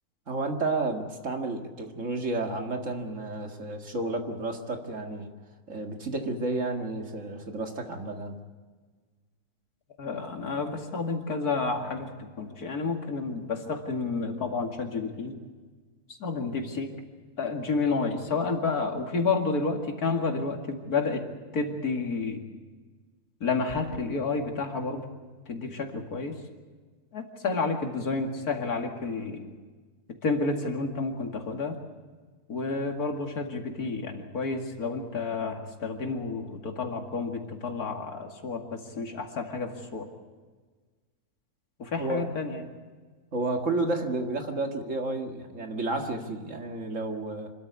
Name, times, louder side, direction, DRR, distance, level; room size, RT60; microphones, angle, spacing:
voice 1, 0.3-5.3 5.7-8.4 42.0-42.4 43.3-47.5, right 2 dB, 55° right, 4 dB, 2.3 m, -31 dB
voice 2, 10.0-15.4 16.1-16.9 17.4-21.3 21.5-22.4 23.4-25.1 25.5-26.4 27.1-29.5 30.2-31.8 32.5-40.1 41.8-42.7, left 4 dB, 90° left, 3 dB, 2.7 m, -30 dB
sound 1, 23.7-24.2, left 1 dB, 70° left, 2.9 m, -46 dB
26.5 x 13.0 x 8.2 m, 1.4 s
omnidirectional pair, 1.5 m